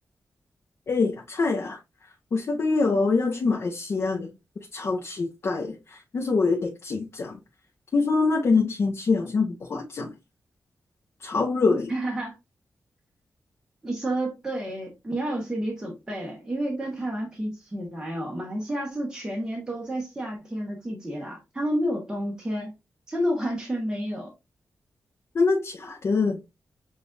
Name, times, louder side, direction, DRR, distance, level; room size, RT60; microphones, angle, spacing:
voice 1, 0.9-1.8 2.3-4.3 4.7-7.4 7.9-10.1 11.2-11.9 25.3-26.4, left 4 dB, 55° left, 0.7 m, -24 dB
voice 2, 11.9-12.3 13.8-22.7 23.1-24.3, right 1 dB, 15° right, 1.2 m, -30 dB
6.9 x 2.5 x 2.5 m
wide cardioid pair, 140°, 5 cm